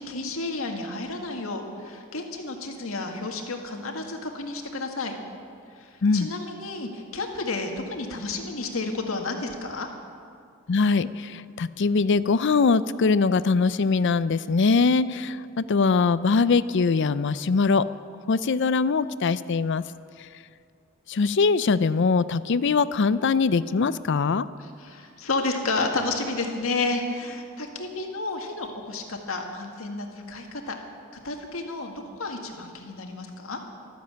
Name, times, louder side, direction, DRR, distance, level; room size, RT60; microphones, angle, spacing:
voice 1, 0.0-5.1 5.8-9.9 24.6-30.8 31.2-33.7, left 3 dB, 80° left, 3 dB, 1.9 m, -31 dB
voice 2, 10.7-17.9 18.3-19.8 21.1-24.5, left 4 dB, 55° left, 15 dB, 0.5 m, -22 dB
13.0 x 12.5 x 8.7 m, 2.4 s
head